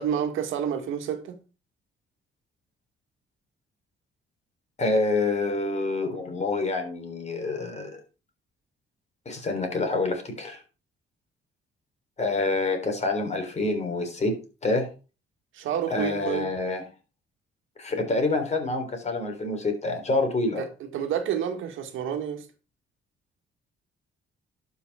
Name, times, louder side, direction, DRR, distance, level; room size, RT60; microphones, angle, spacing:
voice 1, 0.0-1.4 15.5-16.5 20.6-22.4, right 8 dB, 80° right, 1.7 m, -29 dB
voice 2, 4.8-8.0 9.3-10.6 12.2-14.4 14.6-14.9 15.9-16.8 17.8-20.6, left 2 dB, 35° left, 3.8 m, -27 dB
11.5 x 5.8 x 4.9 m
cardioid pair, 90°, 20 cm